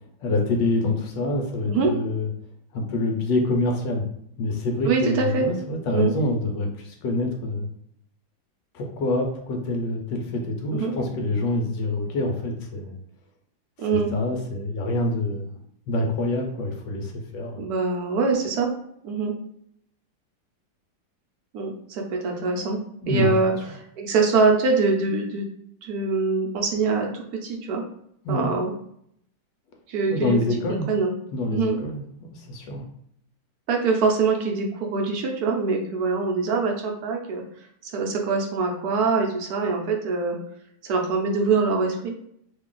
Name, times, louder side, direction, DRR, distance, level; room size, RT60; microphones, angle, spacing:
voice 1, 0.2-2.3 2.7-4.1 4.4-7.7 8.7-12.9 13.9-15.5 15.9-17.6 23.0-23.4 28.2-28.5 30.1-30.9 31.3-32.0 32.3-32.9, left 2 dB, 70° left, 2 dB, 1.2 m, -26 dB
voice 2, 4.8-5.5 5.9-6.1 10.7-10.9 13.8-14.1 17.6-18.7 19.0-19.3 21.5-22.8 23.1-23.5 24.0-25.5 25.8-27.8 28.3-28.7 29.9-30.3 30.7-31.1 31.5-31.8 33.7-37.4 37.9-40.4 40.8-42.1, right 4 dB, 65° right, 0 dB, 1.0 m, -23 dB
3.2 x 2.3 x 3.7 m, 0.71 s
omnidirectional pair, 2.1 m